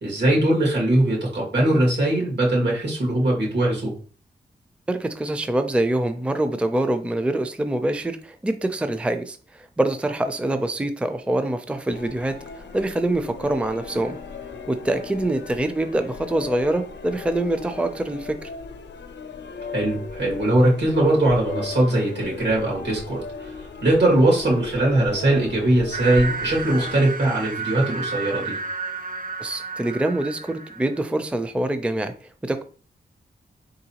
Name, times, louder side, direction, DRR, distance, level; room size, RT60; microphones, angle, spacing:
voice 1, 0.0-3.9 19.7-23.5 23.8-28.6, right 1 dB, 75° right, -3 dB, 2.2 m, -20 dB
voice 2, 4.9-14.2 14.7-18.5 29.4-32.1 32.4-32.6, right 1 dB, 5° right, 9 dB, 0.4 m, -25 dB
sound 1, 11.9-27.0, left 5 dB, 90° left, 0.6 m, -37 dB
sound 2, 25.9-31.0, right 4 dB, 50° right, 0.8 m, -32 dB
4.3 x 3.9 x 2.9 m, 0.42 s
cardioid pair, 70°, 18 cm